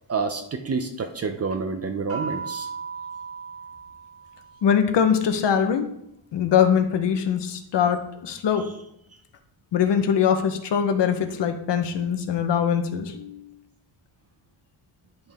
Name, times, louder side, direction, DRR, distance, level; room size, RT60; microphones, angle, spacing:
voice 1, 0.1-2.7, right 4 dB, 30° right, 6 dB, 0.5 m, -28 dB
sound 1, 2.1-4.8, right 5 dB, 80° right, 2.6 m, -36 dB
voice 2, 4.6-5.9 6.3-8.6 9.7-13.4, left 8 dB, 60° left, 7 dB, 0.9 m, -22 dB
10.5 x 5.5 x 3.5 m, 0.78 s
cardioid pair, 160°, 49 cm